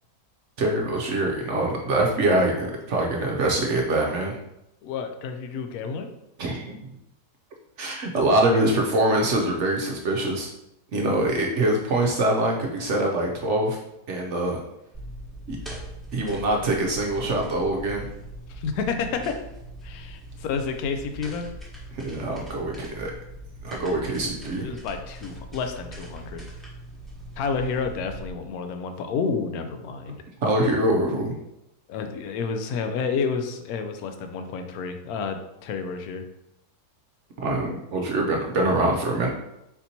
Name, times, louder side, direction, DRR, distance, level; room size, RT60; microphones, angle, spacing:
voice 1, 0.6-4.4 6.4-6.8 7.8-10.5 10.9-13.8 14.1-14.6 15.5-15.6 16.1-18.1 21.9-23.1 23.6-24.7 30.4-31.3 37.4-39.3, right 1 dB, 65° right, 0 dB, 0.8 m, -24 dB
voice 2, 4.8-6.1 18.5-19.4 19.8-21.5 24.6-26.4 27.4-30.2 31.9-36.2, left 5 dB, 70° left, 7 dB, 1.0 m, -30 dB
sound 1, 14.9-28.3, right 1 dB, ahead, 0.8 m, -41 dB
4.3 x 4.0 x 2.8 m, 0.87 s
omnidirectional pair, 1.7 m